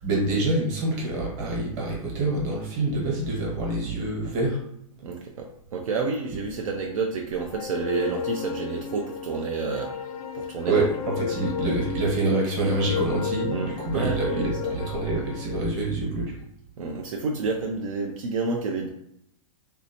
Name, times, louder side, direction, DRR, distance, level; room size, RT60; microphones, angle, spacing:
voice 1, 0.0-4.6 10.7-16.3, right 2 dB, 30° right, -3 dB, 1.2 m, -26 dB
voice 2, 5.0-9.9 10.3-10.9 11.3-11.7 13.5-14.7 16.8-18.9, right 4 dB, 65° right, 1 dB, 0.5 m, -30 dB
sound 1, 7.5-15.6, left 7 dB, 80° left, 0.5 m, -33 dB
3.2 x 2.7 x 2.8 m, 0.74 s
hypercardioid pair, 170°, 19 cm